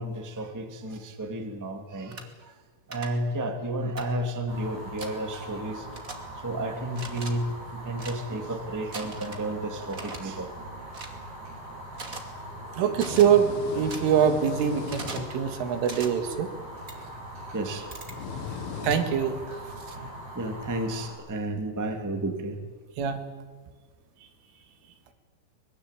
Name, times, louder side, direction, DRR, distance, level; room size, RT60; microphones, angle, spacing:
voice 1, 0.0-2.5 2.9-5.9 6.3-10.5 11.7-11.8 12.8-12.9 17.5-17.9 20.3-22.6, right 1 dB, 10° right, 4 dB, 1.2 m, -32 dB
sound 1, 2.1-2.2 2.9-3.1 4.0-4.1 5.0-5.1 5.9-6.1 6.9-7.3 7.9-8.2 8.9-9.4 9.9-10.2 10.9-11.1 11.9-12.2 12.9-13.3 13.9-14.0 14.9-15.3 15.8-16.1 16.9-17.0 17.9-18.1 18.9-19.0, right 3 dB, 30° right, 1.8 m, -39 dB
Fire, 4.5-21.1, right 1 dB, 55° right, 8.7 m, -42 dB
sound 2, 11.9-19.4, left 7 dB, 90° left, 4.5 m, -41 dB
voice 2, 12.7-16.5 18.8-19.4 23.0-23.2, right 8 dB, 85° right, 7 dB, 4.6 m, -24 dB
24.0 x 22.0 x 8.5 m, 1.4 s
omnidirectional pair, 5.5 m